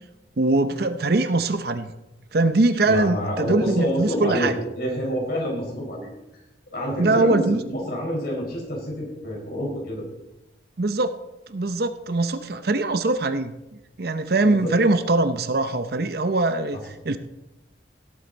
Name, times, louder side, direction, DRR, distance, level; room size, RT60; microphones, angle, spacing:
voice 1, 0.4-1.9 2.3-4.5 7.0-7.6 10.8-11.1 11.5-13.5 14.0-17.2, right 2 dB, 55° right, 11 dB, 0.7 m, -22 dB
voice 2, 2.8-6.1 6.7-10.0 14.4-14.7, equal, 55° left, -2 dB, 4.8 m, -27 dB
17.5 x 7.9 x 4.0 m, 0.97 s
head